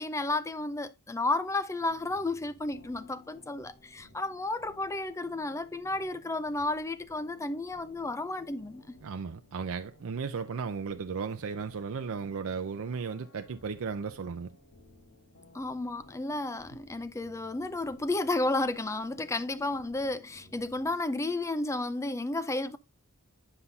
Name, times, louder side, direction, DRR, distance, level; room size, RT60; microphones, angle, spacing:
voice 1, 0.0-9.0 15.5-22.8, left 2 dB, 15° left, 0.5 m, -32 dB
sound 1, 1.8-20.9, left 1 dB, 60° left, 3.5 m, -58 dB
voice 2, 9.0-14.6, right 5 dB, 65° right, 0.5 m, -35 dB
10.0 x 5.5 x 2.7 m
head